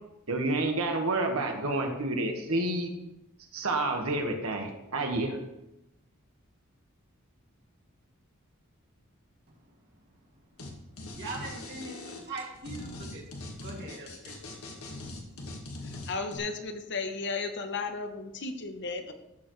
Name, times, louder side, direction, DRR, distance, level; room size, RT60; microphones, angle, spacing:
voice 1, 0.3-2.9 3.5-5.4, right 2 dB, 85° right, 2 dB, 1.6 m, -29 dB
sound 1, 10.6-10.7 11.0-16.4, left 2 dB, 90° left, 1.7 m, -41 dB
voice 2, 11.2-13.2 13.6-14.4, right 3 dB, 55° right, -2 dB, 2.4 m, -41 dB
voice 3, 15.0-15.4 16.1-19.1, left 4 dB, 55° left, 7 dB, 1.0 m, -35 dB
14.0 x 6.9 x 3.2 m, 0.90 s
head